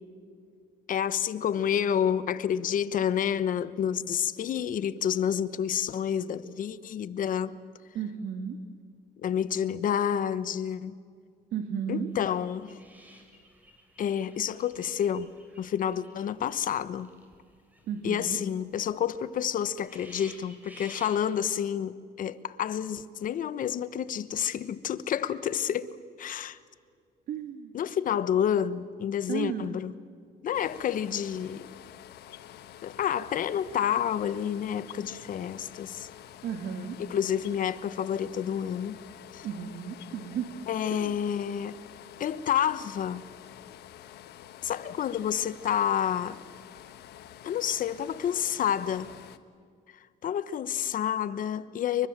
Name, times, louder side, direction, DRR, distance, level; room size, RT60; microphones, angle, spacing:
voice 1, 0.9-7.5 9.2-10.9 11.9-12.7 14.0-15.3 15.6-17.1 18.0-25.9 26.2-26.6 27.7-29.9 30.4-31.7 32.8-36.1 37.0-39.0 39.3-39.5 40.7-41.8 42.2-43.2 44.6-46.4 47.4-49.1 50.2-52.1, left 9 dB, 55° left, 1.2 m, -29 dB
voice 2, 7.9-8.6 11.5-12.1 17.9-18.4 25.2-25.3 27.3-27.7 29.3-29.8 36.4-37.0 39.4-40.5 40.9-41.1, right 8 dB, 65° right, 2.1 m, -34 dB
sound 1, 12.1-16.6 16.9-18.2 18.5-18.6 18.9-19.0 19.4-19.5 19.7-21.2, equal, 10° right, 6.1 m, -52 dB
sound 2, 30.5-49.4, left 11 dB, 75° left, 1.4 m, -48 dB
29.5 x 24.0 x 7.5 m
cardioid pair, 110°, 17 cm